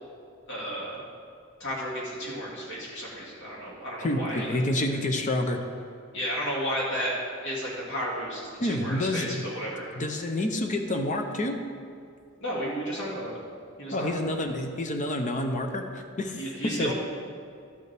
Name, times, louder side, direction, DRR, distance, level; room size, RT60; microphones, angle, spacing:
voice 1, 0.5-1.0 1.6-4.6 6.1-7.1 7.4-10.0 12.4-13.3 13.8-14.1 16.4-16.9, equal, 60° left, -5 dB, 2.0 m, -33 dB
voice 2, 4.0-5.6 8.6-9.4 10.0-11.6 13.9-16.9, left 1 dB, 35° left, 4 dB, 0.6 m, -28 dB
12.5 x 6.8 x 3.4 m, 2.3 s
head